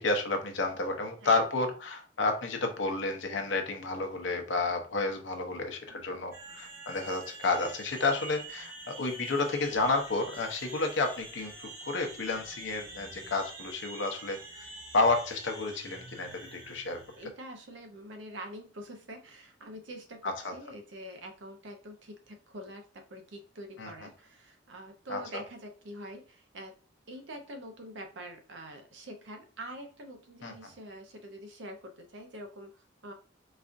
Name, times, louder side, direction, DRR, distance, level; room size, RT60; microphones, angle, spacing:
voice 1, 0.0-17.0 20.2-20.5 23.8-23.9 25.1-25.4 30.4-30.7, left 3 dB, 75° left, 4 dB, 0.7 m, -31 dB
voice 2, 5.9-6.4 17.1-26.8 27.1-33.1, right 1 dB, 75° right, 4 dB, 0.7 m, -45 dB
sound 1, 6.3-17.3, right 2 dB, 50° right, 1.3 m, -46 dB
4.0 x 2.4 x 2.5 m, 0.38 s
head